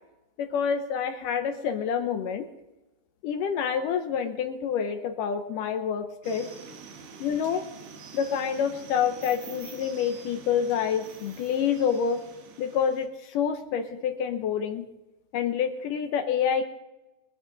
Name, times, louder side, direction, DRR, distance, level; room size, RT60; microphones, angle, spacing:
voice 1, 0.4-2.5 3.2-6.5 7.2-7.6 8.1-12.2 12.6-14.8 15.3-16.6, left 7 dB, 75° left, 7 dB, 2.0 m, -27 dB
sound 1, 6.2-13.1, right 6 dB, 70° right, 2.9 m, -46 dB
20.5 x 13.0 x 3.9 m, 1.0 s
omnidirectional pair, 4.7 m